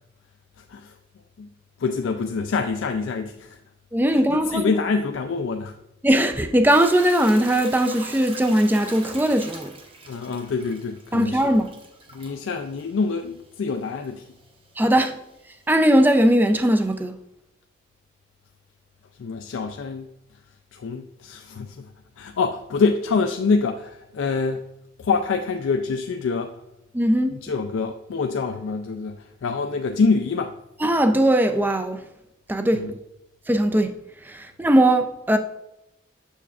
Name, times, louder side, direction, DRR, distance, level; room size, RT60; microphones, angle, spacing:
voice 1, 1.8-3.6 4.1-5.7 10.1-11.5 12.1-14.3 19.2-20.1 20.7-21.9 22.2-24.6 25.0-26.6 27.4-30.6 32.7-32.9, left 4 dB, 80° left, 0.4 m, -26 dB
voice 2, 3.9-4.7 6.0-9.7 11.1-11.7 14.8-15.2 15.7-17.2 26.9-27.4 30.8-32.0 32.5-33.0 33.5-33.9 34.2-35.4, right 1 dB, 10° right, 0.3 m, -19 dB
Hiss / Toilet flush / Trickle dribble, 6.7-17.0, right 3 dB, 25° right, 0.9 m, -43 dB
7.0 x 6.9 x 2.4 m
head